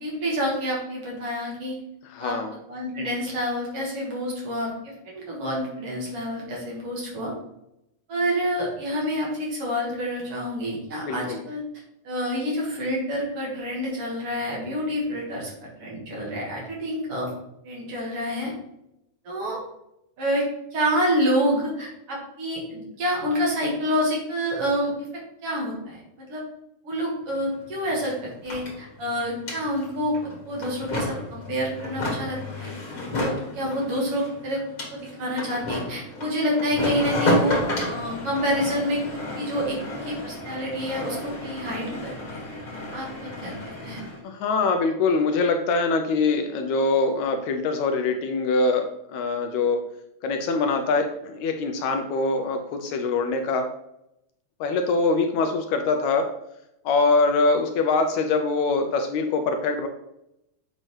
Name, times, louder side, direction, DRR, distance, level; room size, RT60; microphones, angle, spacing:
voice 1, 0.0-1.8 2.2-2.4 2.7-7.3 8.1-11.6 12.0-17.3 17.6-18.5 19.2-19.6 20.2-20.4 20.7-24.9 25.4-26.4 26.8-32.7 33.1-34.6 34.9-37.6 37.9-42.4 42.9-44.0, equal, 55° right, -3 dB, 2.5 m, -28 dB
voice 2, 2.1-2.5 11.1-11.4 44.2-49.8 50.2-53.7 54.6-56.3 56.9-59.9, left 3 dB, 80° left, 5 dB, 1.8 m, -23 dB
sound 1, 27.3-27.4 27.6-44.2, left 1 dB, 35° left, 1.6 m, -31 dB
7.5 x 5.4 x 3.2 m, 0.83 s
omnidirectional pair, 3.5 m